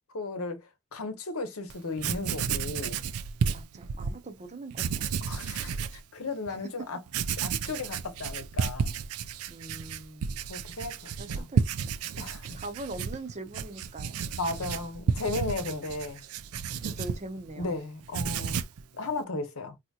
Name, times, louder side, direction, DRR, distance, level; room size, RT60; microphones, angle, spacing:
voice 1, 0.1-0.7 0.9-3.0 5.2-7.0 7.4-8.9 10.5-11.5 12.2-12.5 14.4-16.2 17.6-18.6 18.9-19.8, left 3 dB, 80° left, 0.9 m, -35 dB
Writing, 1.7-1.8 2.0-4.2 4.7-6.0 6.5-6.6 7.1-17.7 18.0-18.8, right 6 dB, 90° right, 0.4 m, -32 dB
voice 2, 3.5-5.1 6.5-6.9 9.5-10.3 11.2-11.9 12.5-14.2 16.8-17.8, right 2 dB, 35° right, 0.7 m, -42 dB
4.1 x 2.9 x 2.3 m
head